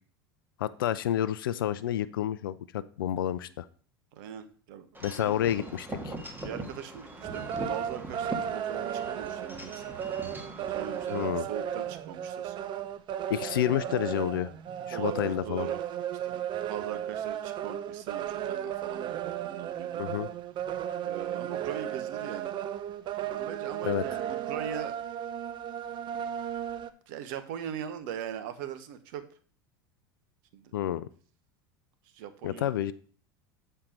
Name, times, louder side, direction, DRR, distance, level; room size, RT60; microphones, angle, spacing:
voice 1, 0.6-3.6 5.0-6.1 11.1-11.4 13.3-14.5 14.9-15.7 20.0-20.3 23.8-24.0 30.7-31.1 32.4-32.9, left 11 dB, 80° left, 15 dB, 0.4 m, -29 dB
voice 2, 4.1-4.9 5.1-5.5 6.4-10.0 10.7-12.6 13.7-13.9 14.9-15.8 16.2-20.0 21.0-22.5 23.2-25.0 27.1-29.3 30.5-30.7 32.1-32.8, right 9 dB, 65° right, 11 dB, 1.0 m, -40 dB
Wind chime / Wind, 4.9-11.2, right 2 dB, 15° right, 1.7 m, -41 dB
sound 1, 7.2-26.9, right 10 dB, 45° right, 0.6 m, -35 dB
7.2 x 4.5 x 5.1 m, 0.43 s
hypercardioid pair, 85°, 11 cm